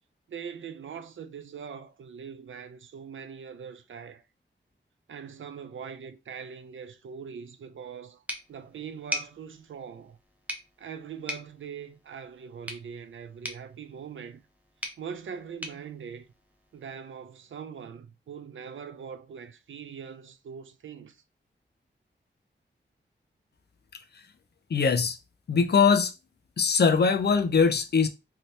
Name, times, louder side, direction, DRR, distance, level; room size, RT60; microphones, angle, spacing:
voice 1, 0.3-4.2 5.1-8.2 8.5-10.2 10.8-14.4 15.0-16.3 16.7-21.2, right 7 dB, 90° right, 0.5 m, -42 dB
sound 1, 8.3-17.0, equal, 5° right, 0.6 m, -42 dB
voice 2, 24.7-25.2 25.5-26.1 26.6-28.1, left 5 dB, 60° left, 0.5 m, -22 dB
2.8 x 2.7 x 3.2 m
wide cardioid pair, 110°, 20 cm